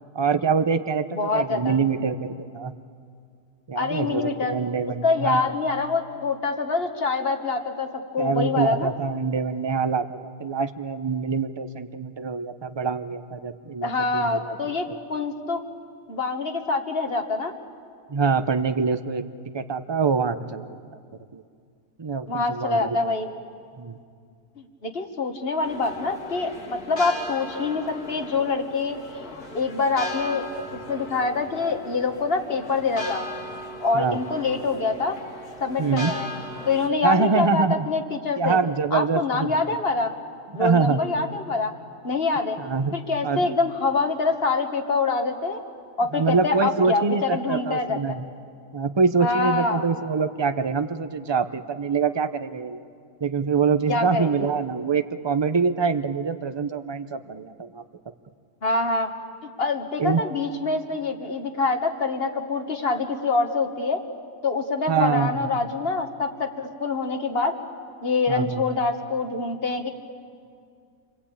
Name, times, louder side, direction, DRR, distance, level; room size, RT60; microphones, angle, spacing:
voice 1, 0.1-2.7 3.7-5.5 8.2-15.0 18.1-19.2 19.5-20.8 21.3-21.4 22.0-23.0 23.8-24.0 33.9-34.2 35.8-36.1 37.0-37.9 38.4-39.8 40.5-41.0 42.6-43.0 43.2-43.5 46.1-48.3 48.7-52.8 53.2-57.8 60.0-60.2 64.9-65.6 68.3-68.6, right 5 dB, 30° right, 10 dB, 0.5 m, -25 dB
voice 2, 1.1-1.8 3.8-4.6 5.0-8.9 13.8-15.6 16.1-17.6 22.3-23.3 24.6-30.5 30.9-33.3 33.8-35.2 35.6-36.3 36.7-38.6 38.9-40.1 40.6-41.7 42.0-42.6 42.9-45.6 46.0-48.0 49.2-49.9 53.9-54.5 58.6-59.1 59.4-64.0 64.4-67.5 68.0-69.9, left 3 dB, 40° left, 5 dB, 1.8 m, -25 dB
sound 1, 25.6-36.9, left 1 dB, 75° left, 2.6 m, -37 dB
29.5 x 23.0 x 8.7 m, 2.2 s
omnidirectional pair, 1.6 m